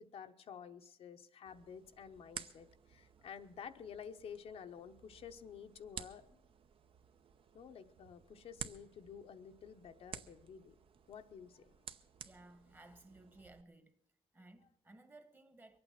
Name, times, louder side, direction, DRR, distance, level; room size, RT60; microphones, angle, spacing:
voice 1, 0.0-6.4 7.5-10.7 11.1-11.7, left 7 dB, 75° left, 0.9 m, -51 dB
sound 1, 1.5-13.6, right 7 dB, 65° right, 0.8 m, -53 dB
voice 2, 12.2-14.0 14.3-15.8, right 2 dB, 20° right, 1.2 m, -59 dB
23.0 x 8.8 x 5.9 m
cardioid pair, 115°, 10 cm